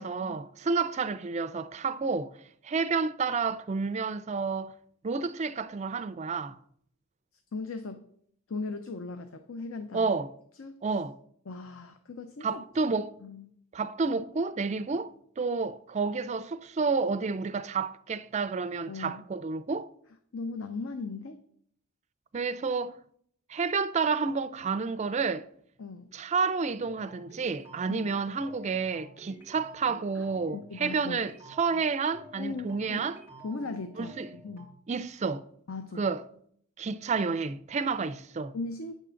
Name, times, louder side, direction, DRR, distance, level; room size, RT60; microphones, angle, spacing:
voice 1, 0.0-2.4 2.6-4.7 5.0-6.6 9.9-10.3 10.8-11.2 12.4-13.2 13.7-19.9 22.3-23.0 23.5-25.5 26.1-33.2 34.0-34.3 34.9-35.4 36.0-36.2 36.8-38.5, right 4 dB, 30° right, 0.4 m, -30 dB
voice 2, 7.5-8.1 8.5-10.1 10.6-10.8 11.5-12.6 13.2-13.5 18.9-19.2 20.3-21.4 25.8-26.1 27.9-28.0 30.2-30.3 30.5-31.2 32.4-33.0 33.4-34.7 35.7-36.1 38.5-38.9, left 3 dB, 65° left, 0.6 m, -38 dB
sound 1, 26.8-34.7, right 2 dB, 85° left, 2.8 m, -51 dB
9.2 x 3.7 x 6.9 m
head